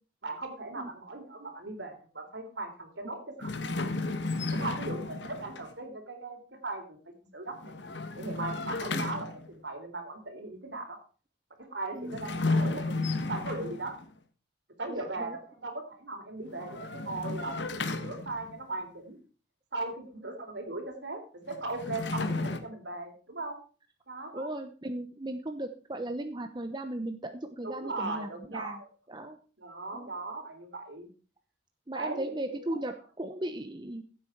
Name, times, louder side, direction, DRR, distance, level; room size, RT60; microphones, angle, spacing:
voice 1, 0.2-3.6 4.5-7.7 8.1-11.0 11.6-14.0 14.8-19.2 19.7-21.2 21.5-23.6 24.1-24.5 27.6-28.8 29.6-31.1 31.9-32.8, right 2 dB, 80° right, 6 dB, 3.7 m, -38 dB
sound 1, 3.4-5.7 7.6-9.5 12.0-14.1 16.5-18.6 21.5-22.6, left 3 dB, 80° left, 1.5 m, -33 dB
voice 2, 11.9-12.3 14.9-15.4 24.3-28.8 29.1-29.4 29.9-30.1 31.9-34.0, right 1 dB, 25° right, 7 dB, 0.9 m, -37 dB
15.5 x 8.5 x 4.6 m, 0.37 s
head